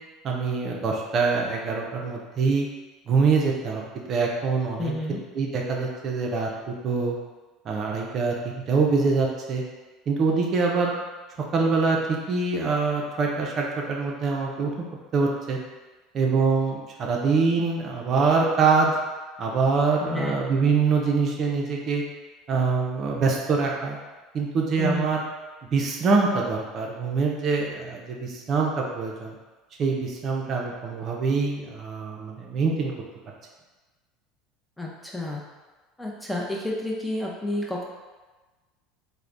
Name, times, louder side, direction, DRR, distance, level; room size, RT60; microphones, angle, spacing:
voice 1, 0.2-2.7 3.1-4.9 5.3-7.1 7.7-8.3 8.7-9.6 10.1-10.9 11.5-14.9 15.1-15.6 16.1-18.9 19.4-22.0 22.5-24.0 24.3-25.2 25.7-29.3 29.8-32.9, right 4 dB, 45° right, -1 dB, 0.5 m, -24 dB
voice 2, 4.8-5.2 20.0-20.4 24.8-25.1 34.8-35.4 36.0-37.8, left 2 dB, 5° left, -3 dB, 0.6 m, -30 dB
3.2 x 2.1 x 2.5 m, 1.2 s
supercardioid pair, 95°, 0 cm